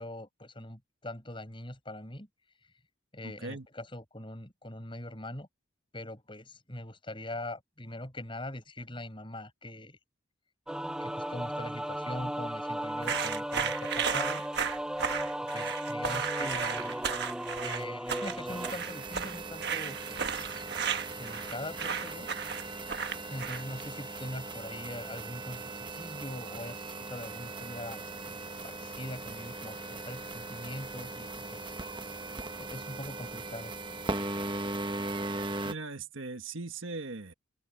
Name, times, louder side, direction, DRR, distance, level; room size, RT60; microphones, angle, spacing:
voice 1, 0.0-2.3 3.1-5.5 5.9-10.0 11.0-14.4 15.5-17.0 17.6-20.6 21.2-22.3 23.3-28.4 28.6-31.7 32.6-33.7, left 1 dB, 25° left, 6.4 m, -42 dB
voice 2, 3.2-3.7 35.6-37.3, right 3 dB, 75° right, 1.6 m, -39 dB
sound 1, 10.7-18.7, right 1 dB, 5° right, 0.7 m, -35 dB
sound 2, 13.0-23.8, right 7 dB, 55° right, 1.4 m, -34 dB
sound 3, 18.5-35.7, right 2 dB, 25° right, 1.0 m, -39 dB
open air
head